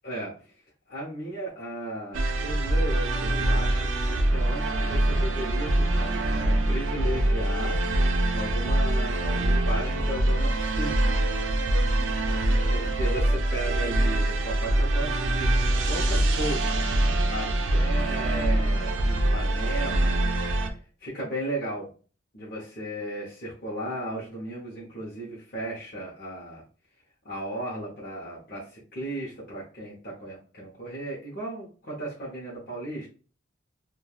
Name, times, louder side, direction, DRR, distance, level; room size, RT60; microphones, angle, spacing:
voice 1, 0.9-7.8 8.3-11.0 12.7-16.8 17.3-17.5 17.7-20.2 21.0-21.9 22.3-26.6 27.2-33.1, right 1 dB, 50° left, -6 dB, 0.8 m, -35 dB
sound 1, 2.1-20.7, right 1 dB, 85° right, 0.5 m, -24 dB
3.1 x 2.2 x 2.3 m, 0.38 s
head